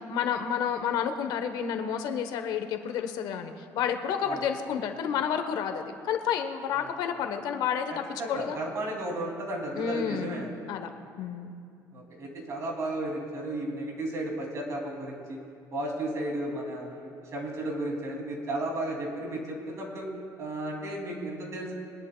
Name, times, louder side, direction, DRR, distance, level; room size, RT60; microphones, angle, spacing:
voice 1, 0.0-8.6 9.8-10.9 11.2-11.6, left 8 dB, 70° left, 7 dB, 0.9 m, -30 dB
voice 2, 8.2-10.5 11.9-15.4 15.7-20.1 20.4-21.7, right 1 dB, 45° right, 0 dB, 2.5 m, -34 dB
23.0 x 11.0 x 2.2 m, 2.4 s
cardioid pair, 135°, 7 cm